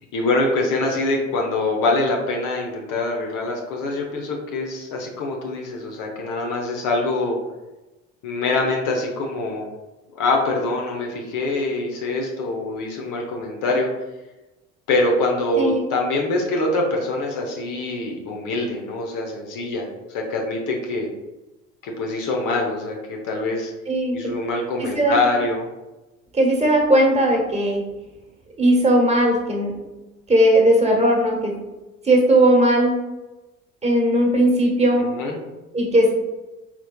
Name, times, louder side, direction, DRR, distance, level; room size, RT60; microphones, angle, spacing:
voice 1, 0.1-7.4 8.2-9.7 10.1-13.9 14.9-21.1 21.8-23.7 24.1-25.7 35.0-35.4, left 2 dB, 55° left, 0 dB, 0.9 m, -24 dB
voice 2, 24.8-25.2 26.3-27.8 28.6-29.7 30.3-31.6 32.0-32.9 33.8-35.0 35.7-36.1, right 1 dB, 15° right, -1 dB, 1.3 m, -17 dB
4.3 x 4.2 x 2.3 m, 1.1 s
figure-of-eight pair, 55°, 39 cm